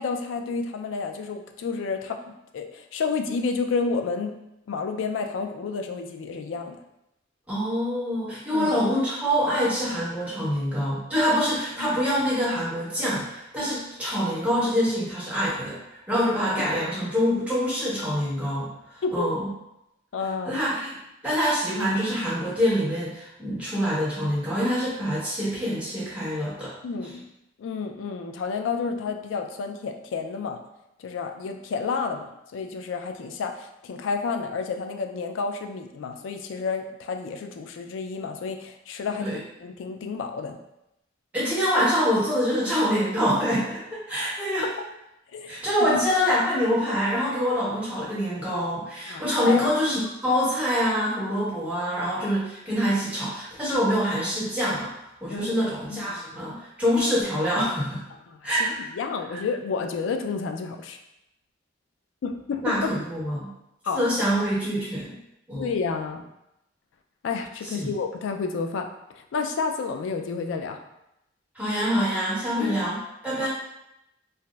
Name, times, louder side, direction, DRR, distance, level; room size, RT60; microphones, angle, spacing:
voice 1, 0.0-6.8 8.5-8.7 11.8-12.0 19.0-19.3 20.1-20.6 26.8-27.2 27.6-30.6 31.0-40.6 44.6-44.9 45.3-46.0 49.1-49.7 55.3-56.2 58.3-58.7 58.9-61.0 62.2-62.9 63.8-64.0 65.6-66.2 67.2-68.9 69.1-70.8 72.6-72.8 73.4-73.5, left 5 dB, 85° left, 6 dB, 0.3 m, -30 dB
voice 2, 7.5-18.7 18.9-19.5 20.4-20.9 21.2-26.7 39.2-39.4 41.3-44.7 45.5-54.9 55.2-58.0 58.4-58.7 59.3-59.4 62.6-63.5 63.9-65.1 65.5-65.7 67.6-67.9 71.5-73.5, equal, 10° right, -10 dB, 1.0 m, -25 dB
4.0 x 2.0 x 2.2 m, 0.86 s
head